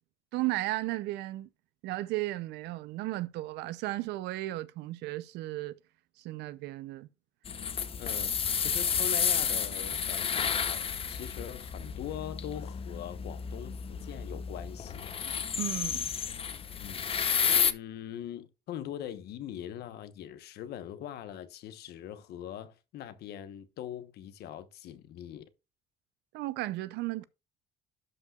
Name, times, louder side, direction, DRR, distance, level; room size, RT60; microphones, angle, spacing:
voice 1, 0.3-1.5 1.8-5.8 6.2-7.1 15.6-16.1 26.3-27.3, right 17 dB, 85° right, 0.6 m, -34 dB
sound 1, 7.5-17.7, left 7 dB, 35° left, 0.7 m, -31 dB
voice 2, 8.0-8.3 8.6-15.2 16.8-17.1 17.5-25.5, left 11 dB, 75° left, 1.1 m, -42 dB
12.0 x 5.5 x 2.4 m
cardioid pair, 110°, 17 cm